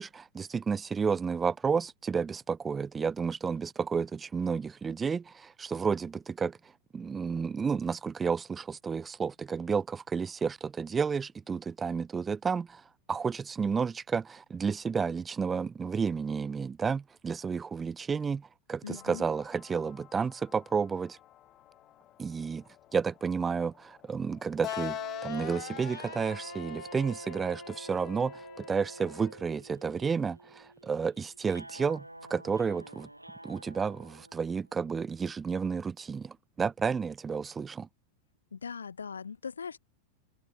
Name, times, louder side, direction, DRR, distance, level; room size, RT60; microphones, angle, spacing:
voice 1, 0.0-6.6 6.9-12.8 13.1-21.2 22.2-22.6 22.9-32.0 32.3-33.1 33.4-37.9, right 5 dB, 15° right, 0.4 m, -31 dB
voice 2, 18.8-19.3 38.5-39.8, left 6 dB, 70° left, 2.2 m, -40 dB
sound 1, 19.0-29.3, left 13 dB, 30° left, 4.9 m, -45 dB
sound 2, 24.6-34.8, right 1 dB, 85° right, 4.3 m, -47 dB
figure-of-eight pair, 90°, 0 cm